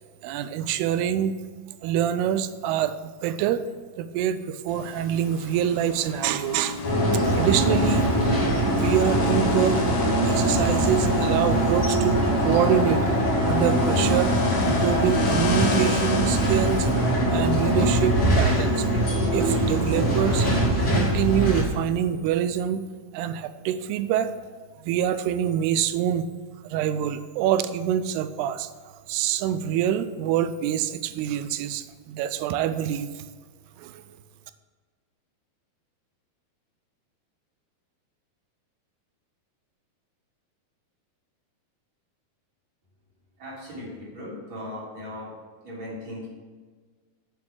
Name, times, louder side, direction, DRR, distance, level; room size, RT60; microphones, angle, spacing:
voice 1, 0.2-1.3 1.8-3.7 4.0-6.8 7.2-8.1 8.7-9.8 10.2-13.1 13.5-14.3 14.6-16.9 17.3-18.9 19.3-20.5 20.9-22.8 23.1-24.3 24.8-26.3 26.6-28.7 29.1-33.2 33.8-34.0, right 10 dB, 85° right, 12 dB, 2.6 m, -26 dB
sound 1, 4.7-18.9, left 3 dB, 70° left, 3.8 m, -35 dB
sound 2, 6.8-21.6, right 1 dB, 30° left, 2.2 m, -22 dB
voice 2, 43.4-45.3 45.6-46.3, left 1 dB, 45° right, -7 dB, 4.5 m, -37 dB
9.2 x 7.2 x 6.2 m, 1.5 s
omnidirectional pair, 4.6 m